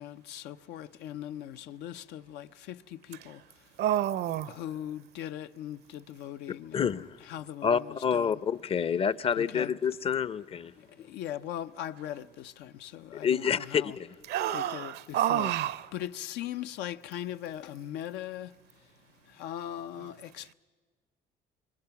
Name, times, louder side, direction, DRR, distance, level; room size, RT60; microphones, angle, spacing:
voice 1, 0.0-3.7 4.5-8.4 9.4-9.7 10.8-14.0 14.5-15.5 15.9-18.6 19.2-20.5, left 11 dB, 90° left, 0.7 m, -40 dB
voice 2, 3.8-4.5 14.3-15.9, right 11 dB, 75° right, 0.7 m, -29 dB
voice 3, 6.7-7.1 7.6-10.7 11.0-11.1 13.2-14.1, left 7 dB, 35° left, 0.6 m, -28 dB
26.0 x 23.0 x 5.9 m
cardioid pair, 110°, 17 cm